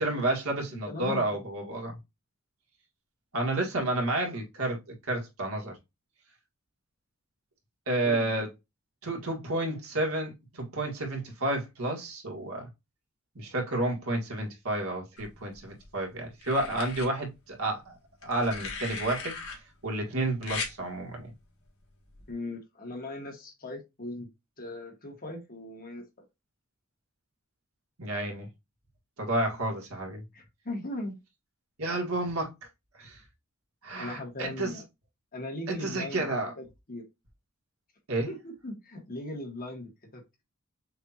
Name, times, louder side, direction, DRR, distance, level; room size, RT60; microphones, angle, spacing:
voice 1, 0.0-1.9 3.3-4.8 5.1-5.7 7.9-8.5 9.0-12.7 13.4-17.9 18.2-19.4 19.8-21.3 28.0-28.5 29.2-30.2 31.8-32.5 33.0-33.2 33.8-34.8 35.7-36.5 38.1-38.3, right 2 dB, 80° right, 1.9 m, -30 dB
voice 2, 0.9-1.6 8.0-8.5 22.3-24.3 24.6-26.0 30.3-31.1 34.0-34.8 35.3-37.0 38.3-40.4, left 1 dB, 45° left, 1.7 m, -39 dB
sound 1, 15.2-15.8 16.4-17.1 18.2-19.6 20.4-20.7 22.1-22.3, left 4 dB, 70° left, 1.7 m, -38 dB
6.6 x 2.7 x 2.9 m
head